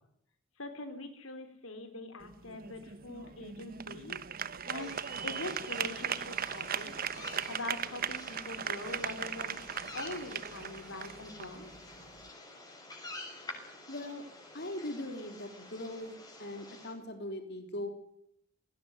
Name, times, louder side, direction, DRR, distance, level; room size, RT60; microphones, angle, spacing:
voice 1, 0.6-4.2 4.7-4.9 5.2-7.2 7.5-9.6 9.9-11.7, left 2 dB, 90° left, 8 dB, 4.0 m, -43 dB
sound 1, 2.2-12.3, right 8 dB, 45° right, 1.1 m, -38 dB
sound 2, 4.8-16.9, left 2 dB, 20° left, 6.3 m, -49 dB
voice 2, 13.9-14.2 14.5-16.1 16.4-17.9, left 1 dB, 55° left, 6 dB, 3.7 m, -40 dB
19.5 x 17.5 x 9.6 m, 0.75 s
head